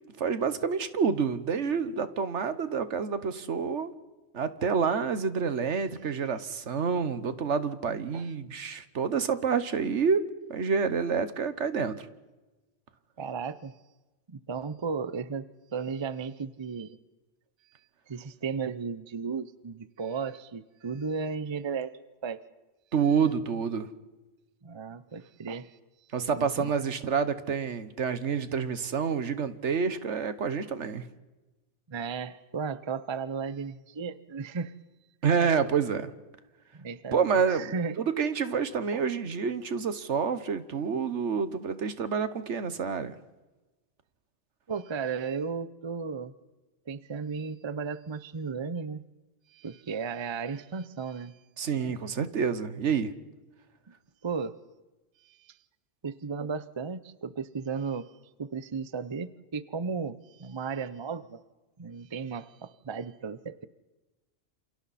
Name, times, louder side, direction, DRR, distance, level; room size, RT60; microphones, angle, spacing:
voice 1, 0.2-3.9 4.3-12.1 22.9-23.9 26.1-31.0 35.2-36.1 37.1-43.2 51.6-53.1, right 6 dB, 70° right, 12 dB, 1.4 m, -28 dB
voice 2, 13.2-13.7 14.3-17.0 18.1-22.4 24.6-25.8 26.3-26.8 31.9-34.7 36.7-38.0 38.9-39.0 44.7-46.3 46.9-49.0 49.5-51.4 51.7-52.0 54.2-54.6 55.2-55.5 56.0-58.1 58.4-61.4 61.8-63.6, right 5 dB, 30° right, 14 dB, 0.6 m, -35 dB
28.5 x 27.5 x 4.2 m, 1.1 s
omnidirectional pair, 1.2 m